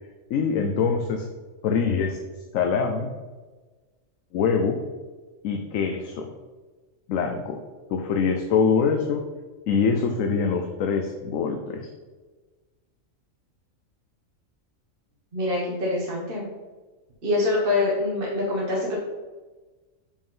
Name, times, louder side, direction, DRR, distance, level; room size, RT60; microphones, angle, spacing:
voice 1, 0.3-1.3 1.6-2.2 2.5-3.1 4.3-4.8 5.4-6.3 7.1-7.6 7.9-9.2 9.7-11.9, left 5 dB, 80° left, 4 dB, 1.1 m, -24 dB
voice 2, 15.3-16.5 17.2-19.0, left 2 dB, 45° right, -5 dB, 1.5 m, -25 dB
5.4 x 5.1 x 5.4 m, 1.3 s
omnidirectional pair, 1.4 m